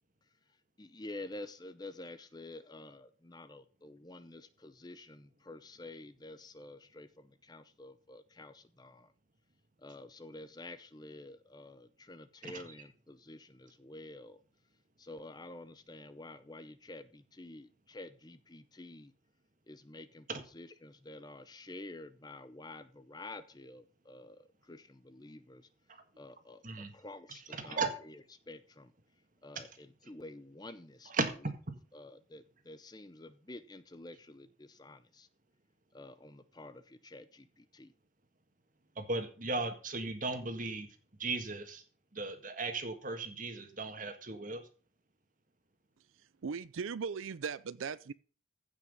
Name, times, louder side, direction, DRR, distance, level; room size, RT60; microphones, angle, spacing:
voice 1, 0.8-9.1 9.8-14.4 15.0-19.1 19.7-25.7 26.2-28.2 28.5-28.9 29.4-31.1 31.9-35.3 35.9-37.9, left 2 dB, 20° left, 0.6 m, -49 dB
voice 2, 27.6-27.9 31.1-31.3 39.0-40.9 41.2-41.8 42.1-44.6, right 3 dB, 40° right, 1.8 m, -36 dB
voice 3, 46.4-48.1, right 5 dB, 85° right, 0.5 m, -38 dB
15.5 x 6.0 x 5.5 m
head